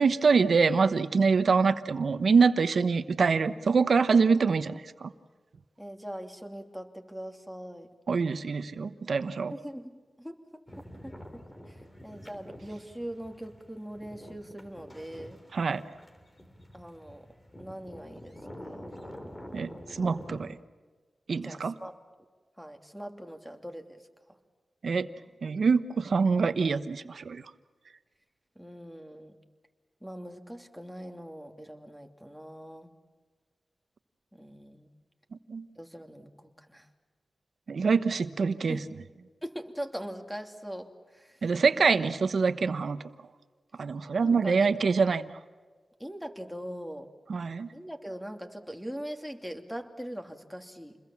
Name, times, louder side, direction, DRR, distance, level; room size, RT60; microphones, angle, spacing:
voice 1, 0.0-5.1 8.1-9.5 15.5-15.8 19.5-20.6 21.3-21.7 24.8-25.1 25.4-27.4 35.5-35.7 37.7-38.8 41.4-43.0 43.8-45.3 47.3-47.7, right 5 dB, 70° right, 12 dB, 1.1 m, -25 dB
voice 2, 5.8-7.9 9.5-10.4 11.0-11.8 12.0-15.4 16.7-17.2 17.6-18.3 18.6-18.9 21.4-21.9 22.6-24.0 28.6-29.4 30.0-32.9 34.3-34.9 35.8-36.9 38.7-38.9 39.4-41.4 41.7-41.9 44.1-44.8 46.0-47.1 47.7-51.0, equal, ahead, 5 dB, 2.8 m, -41 dB
sound 1, 10.7-20.4, equal, 25° left, 3.5 m, -47 dB
29.0 x 21.5 x 7.4 m, 1.4 s
cardioid pair, 60°, 0 cm